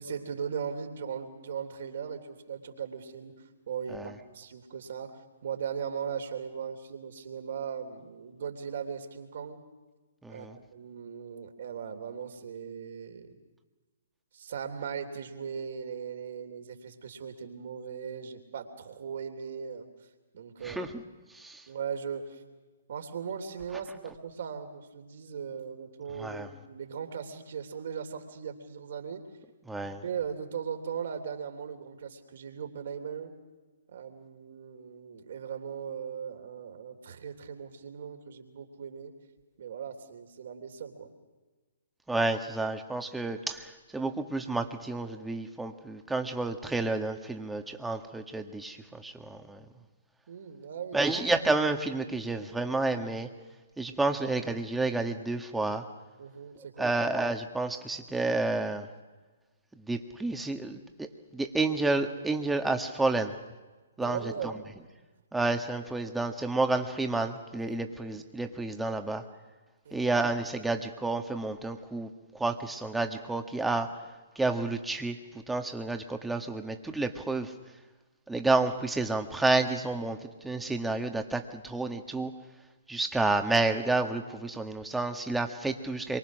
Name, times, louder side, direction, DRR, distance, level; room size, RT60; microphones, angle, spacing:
voice 1, 0.0-3.3 3.7-9.6 10.3-10.5 10.7-13.4 14.3-19.9 20.3-20.9 21.7-22.4 22.9-29.2 29.8-33.3 33.9-39.1 39.6-41.1 50.3-51.1 56.2-56.9 64.0-64.7 65.4-65.5 68.1-68.2 69.8-70.1, right 7 dB, 55° right, 6 dB, 3.3 m, -38 dB
voice 2, 10.2-10.6 20.6-21.0 21.3-21.6 26.2-26.5 29.7-30.0 42.1-49.7 50.9-53.3 53.8-55.8 56.8-58.9 59.7-63.4 64.0-64.5 65.3-69.2 69.9-73.9 74.4-75.2 75.5-77.5 78.3-82.3 82.9-86.2, right 2 dB, 5° right, 5 dB, 1.7 m, -30 dB
26.5 x 24.0 x 6.4 m, 1.3 s
figure-of-eight pair, 125°, 0 cm